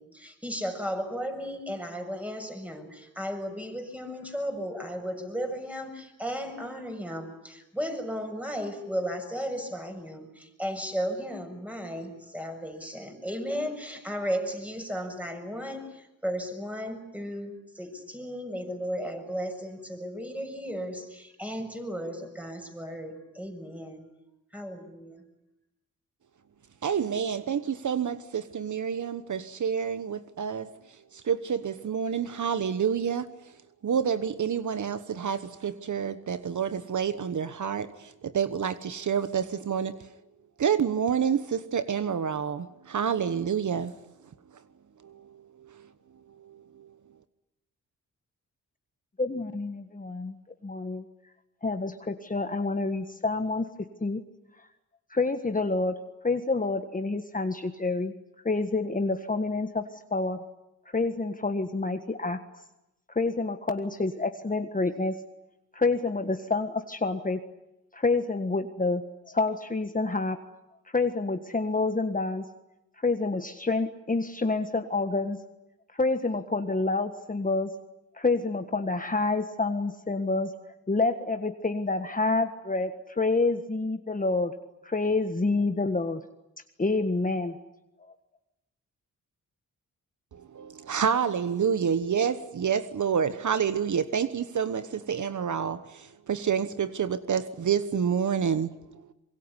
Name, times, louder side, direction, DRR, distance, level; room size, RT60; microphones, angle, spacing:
voice 1, 0.0-24.0 24.5-25.2, equal, 5° right, 6.8 m, -35 dB
voice 2, 26.8-30.7 31.1-33.3 33.8-40.1 40.6-43.9 45.0-45.9 46.4-46.9 90.3-98.8, right 7 dB, 60° right, 1.2 m, -28 dB
voice 3, 49.2-50.4 50.6-51.1 51.6-53.7 54.0-54.2 55.1-56.0 56.2-58.1 58.5-60.4 60.9-62.4 63.1-65.2 65.7-67.4 67.9-70.4 70.9-72.4 73.0-75.4 75.9-77.7 78.2-80.5 80.9-84.5 84.8-86.2 86.8-87.6 88.0-88.1, left 3 dB, 25° left, 1.6 m, -28 dB
25.5 x 22.5 x 9.9 m
cardioid pair, 65°, 33 cm